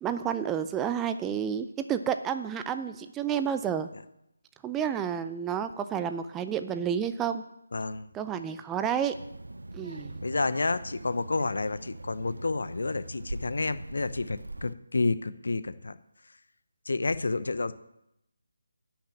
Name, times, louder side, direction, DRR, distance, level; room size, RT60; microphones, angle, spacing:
voice 1, 0.0-3.9 4.6-7.4 8.1-9.2 9.7-10.2, right 8 dB, 10° right, 9 dB, 0.4 m, -30 dB
voice 2, 7.7-8.1 10.2-16.0 16.9-17.7, left 3 dB, 65° left, 15 dB, 0.7 m, -30 dB
Child speech kid speaking, 9.1-14.7, right 2 dB, 80° right, 0.6 m, -42 dB
10.0 x 5.9 x 8.7 m, 0.83 s
figure-of-eight pair, 155°, 0 cm